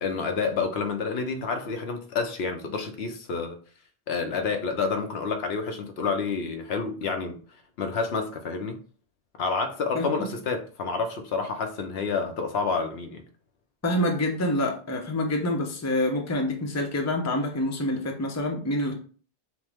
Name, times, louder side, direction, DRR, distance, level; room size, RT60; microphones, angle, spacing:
voice 1, 0.0-3.6 4.1-7.4 7.8-8.8 9.4-13.2, left 4 dB, 80° left, 0.9 m, -29 dB
voice 2, 9.9-10.4 13.8-18.9, left 1 dB, 20° left, 0.6 m, -27 dB
6.0 x 2.1 x 3.4 m
omnidirectional pair, 1.1 m